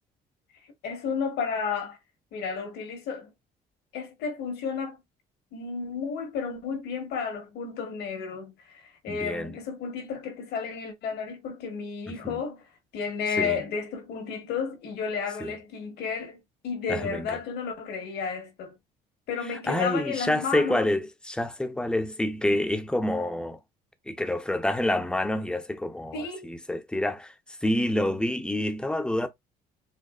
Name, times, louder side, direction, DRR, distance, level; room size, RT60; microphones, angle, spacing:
voice 1, 0.8-2.0 2.3-3.3 3.9-5.0 5.5-12.6 12.9-18.7 19.3-20.9 26.1-26.4, left 5 dB, 75° left, 1.5 m, -32 dB
voice 2, 9.1-9.5 12.1-12.4 13.4-13.6 15.4-15.5 16.9-17.3 19.7-23.6 24.1-29.3, left 1 dB, 5° left, 0.6 m, -28 dB
4.3 x 2.6 x 2.4 m
cardioid pair, 110°, 17 cm